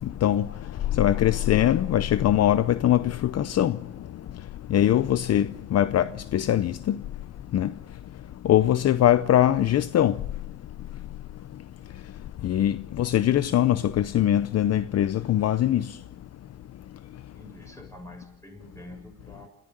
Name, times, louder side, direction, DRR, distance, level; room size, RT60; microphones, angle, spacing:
voice 1, 1.0-3.8 4.7-6.1 6.3-7.0 7.5-7.7 8.4-10.2 12.4-15.8, left 11 dB, 55° left, 0.6 m, -22 dB
voice 2, 17.1-19.5, left 1 dB, 10° left, 7.2 m, -46 dB
28.0 x 14.0 x 7.7 m
cardioid pair, 90°, 30 cm